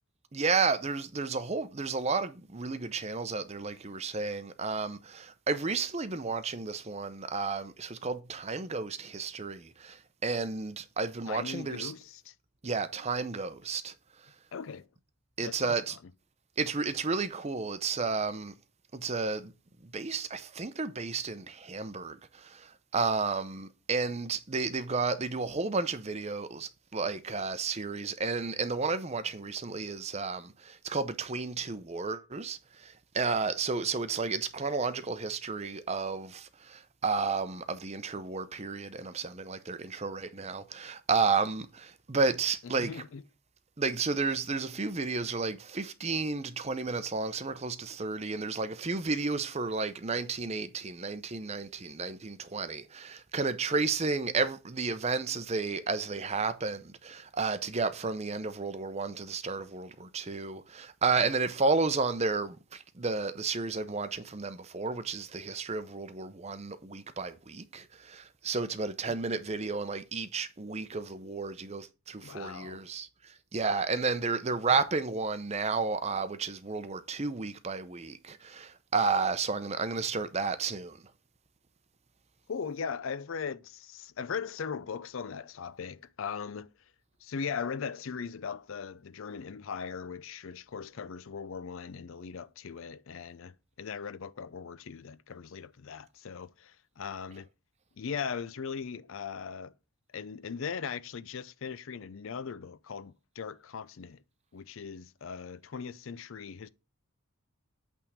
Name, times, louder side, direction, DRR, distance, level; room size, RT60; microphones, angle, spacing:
voice 1, 0.3-11.9 12.6-13.9 15.4-16.0 16.6-18.5 18.9-19.5 19.9-42.9 43.8-73.1 73.5-81.0, right 4 dB, 30° right, 0.6 m, -32 dB
voice 2, 11.3-12.3 14.5-14.9 15.4-15.7 42.7-43.2 69.1-69.2 72.2-72.8 82.5-86.7 87.2-97.5 98.0-99.7 100.1-104.2 104.5-106.7, left 6 dB, 65° left, 0.5 m, -39 dB
8.6 x 3.6 x 6.6 m
head